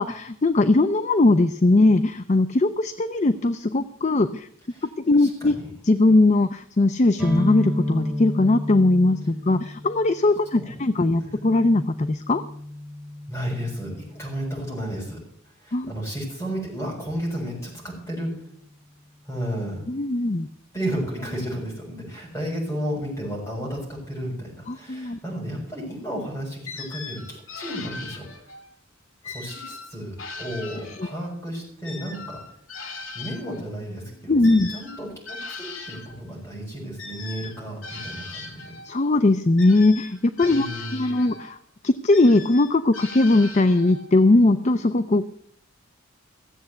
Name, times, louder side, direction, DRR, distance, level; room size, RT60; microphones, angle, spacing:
voice 1, 0.0-4.5 5.1-5.5 5.8-12.4 15.7-15.9 19.9-20.5 24.7-25.2 34.3-34.7 38.8-41.6 41.8-45.3, left 2 dB, 35° left, 10 dB, 0.5 m, -20 dB
voice 2, 5.2-5.7 10.6-10.7 11.2-11.3 13.3-15.2 15.6-18.4 19.3-19.8 20.7-28.5 29.2-32.4 33.1-38.7 40.5-41.2, equal, 15° left, -3 dB, 7.0 m, -33 dB
sound 1, 7.2-14.8, left 1 dB, ahead, 3.0 m, -32 dB
sound 2, 26.7-28.7 29.2-31.3 31.8-36.2 37.0-39.0 39.6-41.6 42.1-44.1, left 4 dB, 70° left, 2.1 m, -39 dB
15.5 x 7.8 x 8.3 m, 0.67 s
head